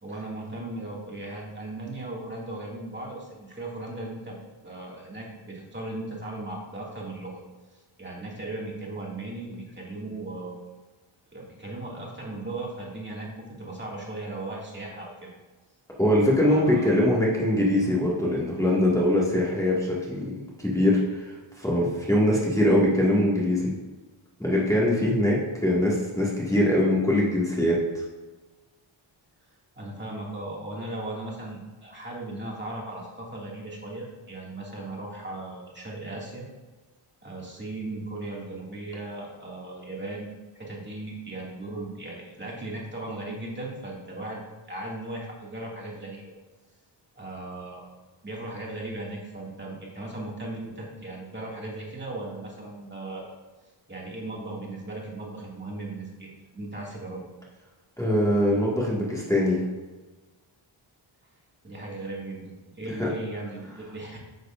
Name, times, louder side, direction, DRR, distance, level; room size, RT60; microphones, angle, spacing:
voice 1, 0.0-4.4 4.6-7.4 8.0-10.6 11.3-15.3 16.4-17.1 29.8-36.5 37.2-40.3 40.5-44.4 44.7-46.4 47.2-47.9 48.2-53.3 53.9-57.3 61.6-62.4 62.7-64.2, right 2 dB, 20° right, -4 dB, 2.2 m, -37 dB
voice 2, 16.0-23.7 24.4-27.8 58.0-59.6 63.0-63.1, left 1 dB, 5° left, -6 dB, 1.8 m, -23 dB
10.0 x 6.5 x 2.5 m, 1.2 s
wide cardioid pair, 95°, 50 cm